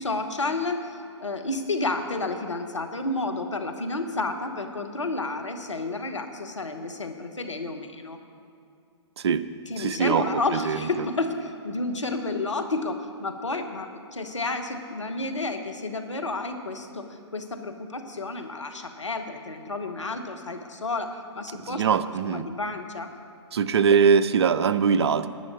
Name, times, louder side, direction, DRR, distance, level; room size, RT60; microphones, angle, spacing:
voice 1, 0.0-8.2 9.7-21.8 22.2-23.1, left 2 dB, 85° left, 6 dB, 1.1 m, -31 dB
voice 2, 9.8-11.1 21.6-22.5 23.5-25.3, right 6 dB, 60° right, 13 dB, 0.6 m, -22 dB
10.5 x 6.4 x 8.2 m, 2.5 s
figure-of-eight pair, 115°, 15 cm